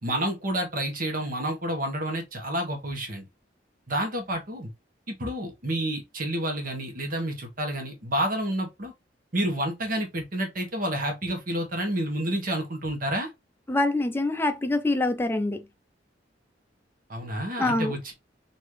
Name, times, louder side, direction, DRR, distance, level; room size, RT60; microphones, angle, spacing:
voice 1, 0.0-3.3 3.9-4.7 5.1-8.9 9.3-13.3 17.1-18.1, right 1 dB, 50° right, 1.3 m, -29 dB
voice 2, 13.7-15.7 17.6-18.0, left 2 dB, 15° left, 0.5 m, -25 dB
4.1 x 2.7 x 3.1 m
head